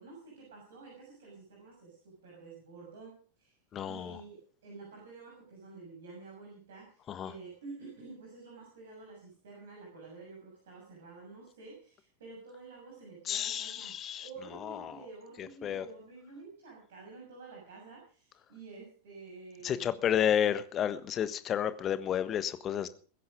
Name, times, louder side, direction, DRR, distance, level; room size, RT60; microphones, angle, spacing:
voice 1, 0.0-3.6 3.8-13.9 14.2-19.9, right 3 dB, 60° right, -2 dB, 6.7 m, -50 dB
voice 2, 3.7-4.2 7.1-7.3 13.3-14.2 14.6-14.9 15.6-15.8 19.6-22.9, left 9 dB, 30° left, 13 dB, 1.4 m, -31 dB
21.5 x 10.5 x 5.1 m, 0.41 s
figure-of-eight pair, 90°, 0 cm